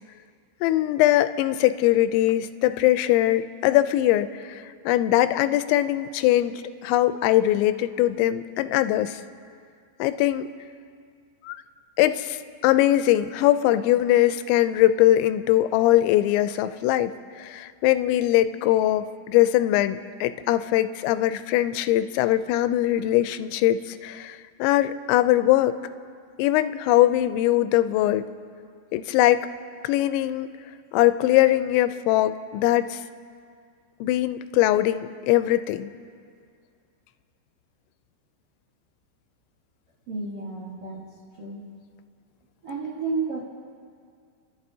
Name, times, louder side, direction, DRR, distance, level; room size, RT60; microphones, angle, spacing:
voice 1, 0.6-6.5 6.8-9.2 10.0-10.5 11.4-11.6 12.0-12.4 12.6-25.8 26.4-28.2 28.9-29.5 29.8-30.5 30.9-33.0 34.0-35.9, left 14 dB, 90° left, 11 dB, 2.9 m, -21 dB
voice 2, 40.1-41.0 41.4-41.6 42.6-43.4, right 4 dB, 70° right, -6 dB, 1.5 m, -31 dB
29.0 x 11.5 x 2.7 m, 2.2 s
omnidirectional pair, 5.1 m